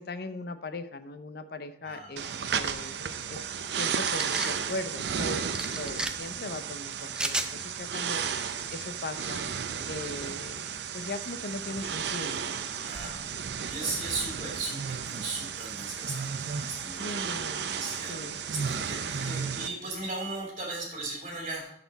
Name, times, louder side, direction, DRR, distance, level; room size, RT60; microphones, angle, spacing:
voice 1, 0.0-3.5 3.7-5.5 5.8-12.6 14.4-14.5 17.0-17.7 18.1-18.4 19.3-19.9, left 2 dB, 60° left, 10 dB, 0.7 m, -39 dB
voice 2, 1.8-2.2 5.8-5.9 6.2-6.3 12.8-13.3 13.7-17.3 17.6-21.7, right 3 dB, 35° right, -2 dB, 2.4 m, -37 dB
sound 1, 2.2-19.7, right 7 dB, 70° right, 0.5 m, -33 dB
sound 2, 4.0-4.5 5.5-6.1 7.1-7.5, right 1 dB, 5° right, 0.5 m, -32 dB
13.0 x 4.3 x 4.0 m, 0.72 s
head